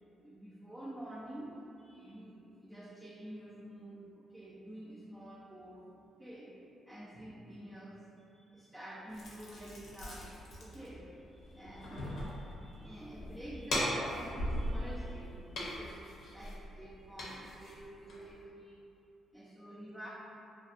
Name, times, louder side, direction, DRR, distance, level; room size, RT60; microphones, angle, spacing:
voice 1, 0.2-6.5 6.9-18.9 19.3-20.1, right 1 dB, 10° right, -6 dB, 0.3 m, -49 dB
sound 1, 9.1-18.4, equal, 70° left, 0.6 m, -40 dB
2.5 x 2.4 x 2.3 m, 2.7 s
cardioid pair, 90°, 0 cm